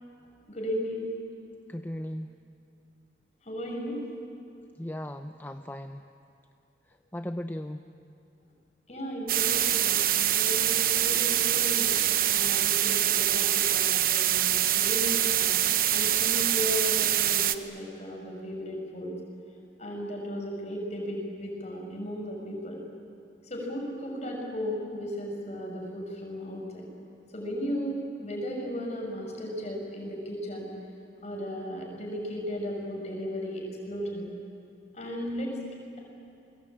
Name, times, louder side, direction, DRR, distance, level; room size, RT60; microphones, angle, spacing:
voice 1, 0.5-1.0 3.5-4.0 8.9-12.0 12.3-15.5 15.9-19.1 19.8-22.8 23.5-26.9 27.3-30.7 31.2-34.3 34.9-35.5, equal, 40° left, 0 dB, 6.3 m, -35 dB
voice 2, 1.7-2.3 4.8-6.0 7.1-7.8, left 1 dB, 10° left, 7 dB, 0.6 m, -36 dB
sound 1, 9.3-17.6, right 11 dB, 55° right, 0.9 m, -25 dB
29.0 x 22.0 x 8.8 m, 2.6 s
head